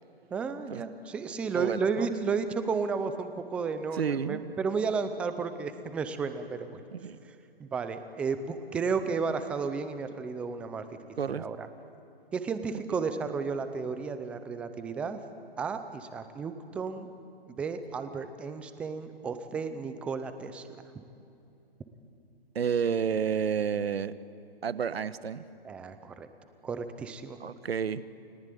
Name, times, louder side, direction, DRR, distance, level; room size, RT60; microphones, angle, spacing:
voice 1, 0.3-6.8 7.6-10.8 11.3-11.7 12.3-15.2 15.6-17.1 17.5-20.6 20.9-21.0 25.6-26.3 26.6-27.4, right 5 dB, 5° right, 10 dB, 0.5 m, -33 dB
voice 2, 1.5-2.1 3.9-4.4 6.9-7.2 11.2-11.5 22.5-24.1 24.6-25.4 27.4-28.0, right 7 dB, 80° right, 14 dB, 1.3 m, -30 dB
29.5 x 19.0 x 9.3 m, 2.8 s
hypercardioid pair, 155°, 30 cm